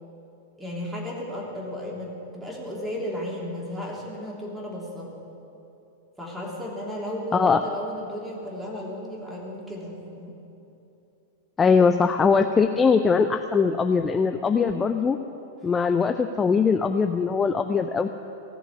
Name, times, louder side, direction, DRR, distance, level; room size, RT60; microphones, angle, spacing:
voice 1, 0.6-5.1 6.2-10.3, equal, 5° right, -3 dB, 3.2 m, -34 dB
voice 2, 11.6-15.2 15.6-18.1, left 5 dB, 15° left, 7 dB, 0.5 m, -21 dB
16.5 x 7.0 x 9.7 m, 2.9 s
figure-of-eight pair, 95°, 0 cm